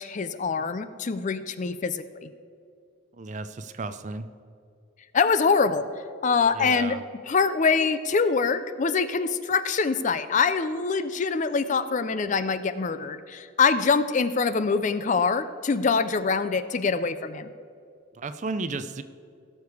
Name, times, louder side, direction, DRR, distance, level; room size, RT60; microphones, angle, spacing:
voice 1, 0.0-2.3 5.1-5.9 6.2-7.0 7.3-17.5, left 5 dB, 35° left, 13 dB, 0.4 m, -24 dB
voice 2, 3.2-4.3 6.5-7.1 18.2-19.0, right 3 dB, 35° right, 12 dB, 0.4 m, -33 dB
17.5 x 6.7 x 4.8 m, 2.4 s
head